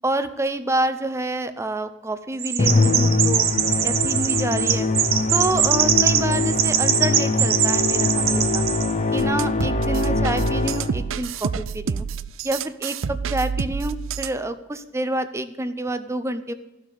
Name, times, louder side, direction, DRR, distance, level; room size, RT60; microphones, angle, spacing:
voice 1, 0.0-3.5 3.8-4.9 5.3-8.6 9.1-12.0 12.4-16.5, right 1 dB, 15° right, 11 dB, 0.7 m, -27 dB
Chirp tweet, 2.4-8.9, right 9 dB, 50° right, 0.9 m, -22 dB
Musical instrument, 2.6-11.1, left 3 dB, 35° left, 0.7 m, -23 dB
sound 1, 9.2-14.4, right 6 dB, 80° right, 0.5 m, -28 dB
14.5 x 6.5 x 8.3 m, 0.96 s
head